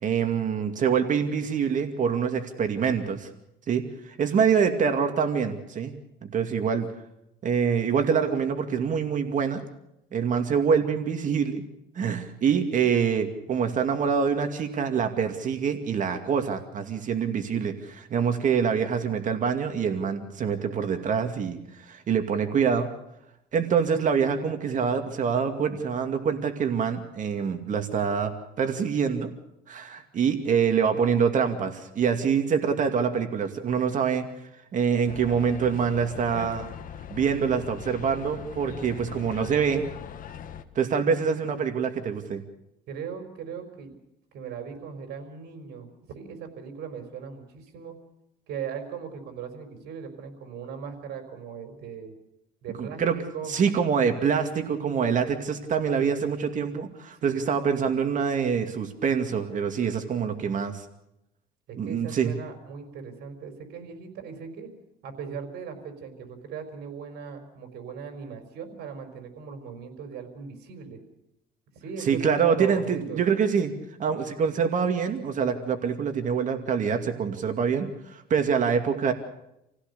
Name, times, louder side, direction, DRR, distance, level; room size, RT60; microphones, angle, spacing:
voice 1, 0.0-3.3 3.7-3.8 4.2-5.9 6.2-6.9 7.4-9.6 10.1-11.6 12.0-21.6 21.9-22.9 23.5-29.3 29.7-34.3 34.7-36.7 37.1-39.8 40.8-42.4 52.8-53.1 53.5-60.8 61.8-62.3 72.1-73.7 74.0-79.1, right 6 dB, 50° right, 7 dB, 2.4 m, -25 dB
sound 1, 35.1-40.6, left 8 dB, 55° left, 1.7 m, -41 dB
voice 2, 42.9-44.0 44.3-45.9 46.1-48.0 48.5-52.1 52.6-53.5 57.2-57.5 61.7-64.7 65.0-71.0 71.7-73.2, right 6 dB, 75° right, 6 dB, 4.9 m, -38 dB
28.0 x 16.5 x 6.9 m, 0.82 s
cardioid pair, 110°, 17 cm